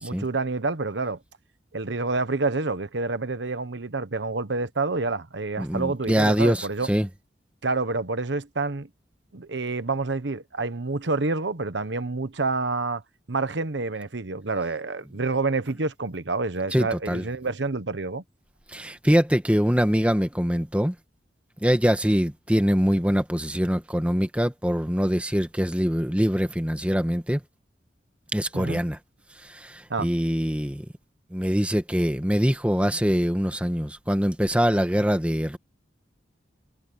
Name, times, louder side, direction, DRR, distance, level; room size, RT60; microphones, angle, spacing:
voice 1, 0.0-1.2 1.7-6.9 7.6-8.9 9.3-13.0 13.3-18.2 28.5-28.8 29.9-30.1, right 3 dB, 80° right, 1.1 m, -28 dB
voice 2, 5.6-7.1 16.7-17.2 18.7-20.9 21.6-27.4 28.3-29.0 29.4-30.8 31.3-35.6, equal, 5° right, 1.6 m, -23 dB
head